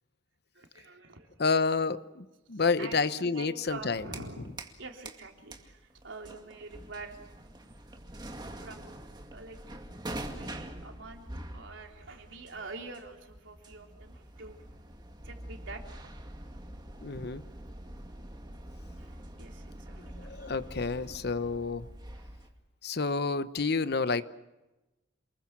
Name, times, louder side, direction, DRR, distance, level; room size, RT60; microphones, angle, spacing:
voice 1, 0.5-1.4 2.5-7.2 8.6-9.1 9.3-9.8 10.3-11.3 11.5-14.7 15.2-16.2 19.0-20.4 21.0-21.1 22.1-22.2, right 3 dB, 80° right, 2 dB, 3.7 m, -46 dB
voice 2, 1.4-4.5 17.0-17.4 20.0-21.9 22.8-24.2, left 4 dB, 55° left, 13 dB, 0.9 m, -30 dB
sound 1, 3.7-4.8 5.0-22.5, right 1 dB, 25° right, 2.2 m, -45 dB
28.5 x 21.5 x 6.1 m, 1.0 s
head